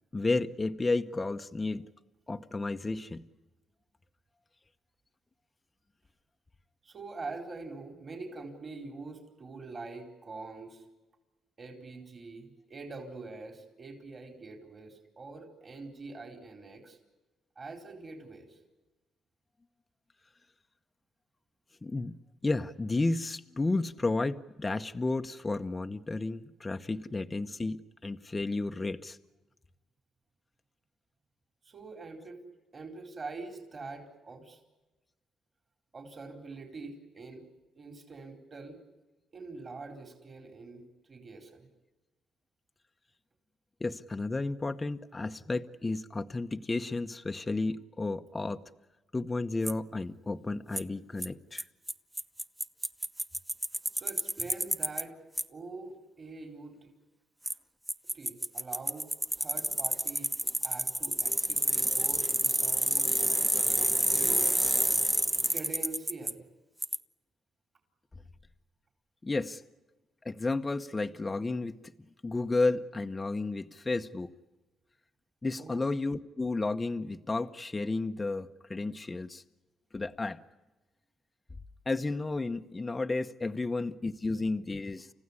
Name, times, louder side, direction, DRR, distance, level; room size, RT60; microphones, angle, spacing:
voice 1, 0.1-1.8 2.3-3.2 21.8-22.2 22.4-29.2 43.8-48.6 49.1-51.6 69.2-69.6 70.2-71.8 72.2-74.3 75.4-79.4 79.9-80.4 81.9-85.1, left 3 dB, 20° left, 6 dB, 0.9 m, -32 dB
voice 2, 6.8-10.8 11.6-17.0 17.6-18.6 31.6-32.4 32.7-34.6 35.9-37.5 37.7-38.8 39.3-41.7 53.9-55.2 55.5-56.9 58.1-59.1 59.4-60.3 60.6-63.1 63.5-64.5 65.5-66.4 75.6-75.8, right 3 dB, 40° right, 5 dB, 4.4 m, -44 dB
Bicycle, 49.7-49.8 50.8-50.9 51.2-51.3 51.6-51.7 51.9-52.0 52.2-55.0 55.4-55.5 57.5-57.6 57.9-66.3 66.8-67.0, right 1 dB, 10° right, 0.8 m, -28 dB
30.0 x 15.0 x 9.9 m, 1.1 s
cardioid pair, 90°, 0 cm